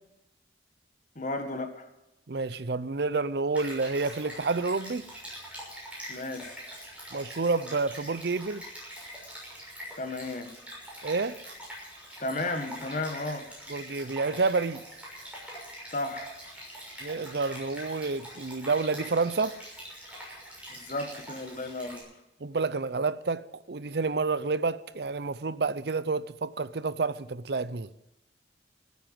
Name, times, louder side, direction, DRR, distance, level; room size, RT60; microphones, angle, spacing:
voice 1, 1.1-1.9 6.1-6.6 10.0-10.5 12.2-13.5 15.9-16.3 20.7-22.0, left 2 dB, 45° left, 1.7 m, -33 dB
voice 2, 2.3-5.1 7.1-8.6 11.0-11.4 13.7-14.8 17.0-19.6 22.4-27.9, right 4 dB, 60° right, 0.6 m, -29 dB
Stream, 3.5-22.0, equal, 5° right, 6.3 m, -44 dB
15.0 x 9.2 x 7.7 m
head